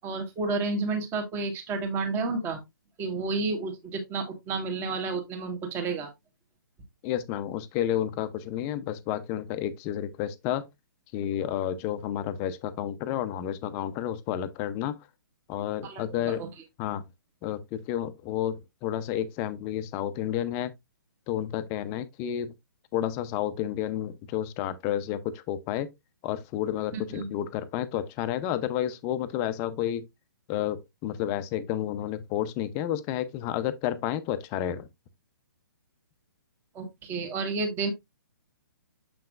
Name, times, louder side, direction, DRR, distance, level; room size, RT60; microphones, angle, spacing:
voice 1, 0.0-2.6 3.0-6.1 15.8-16.5 26.9-27.3 36.7-37.9, right 3 dB, 20° right, 1.3 m, -31 dB
voice 2, 7.0-10.7 11.1-15.1 15.5-16.5 16.8-17.0 17.4-20.7 21.3-22.5 22.9-25.9 26.2-30.0 30.5-34.9, left 11 dB, 25° left, 0.6 m, -31 dB
6.8 x 5.7 x 2.4 m
figure-of-eight pair, 130°, 11 cm